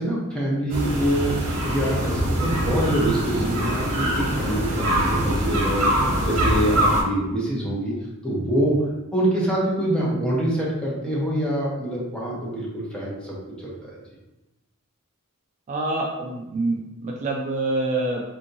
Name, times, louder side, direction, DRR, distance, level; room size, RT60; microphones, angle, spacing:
voice 1, 0.0-7.9 8.2-8.8 9.1-13.9, right 1 dB, 5° left, -5 dB, 0.8 m, -25 dB
sound 1, 0.7-7.0, equal, 80° right, 0.9 m, -23 dB
voice 2, 15.7-18.2, right 2 dB, 35° right, -1 dB, 0.3 m, -26 dB
3.5 x 2.7 x 2.6 m, 0.99 s
head